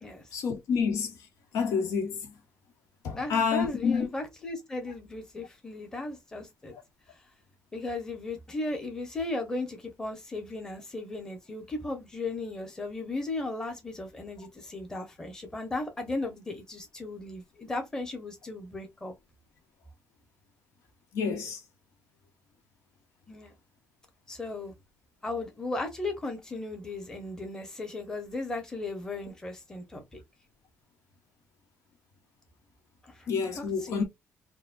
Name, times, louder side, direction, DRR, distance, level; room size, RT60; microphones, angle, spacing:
voice 1, 0.3-1.1 1.5-2.2 3.0-4.1 21.1-21.6 33.3-34.0, left 6 dB, 80° left, 1.1 m, -28 dB
voice 2, 3.1-6.7 7.7-19.1 23.3-23.5 24.3-24.7 25.2-30.2 33.1-33.3 33.5-34.0, left 2 dB, 10° left, 0.9 m, -36 dB
4.8 x 2.2 x 2.5 m
cardioid pair, 165°, 5 cm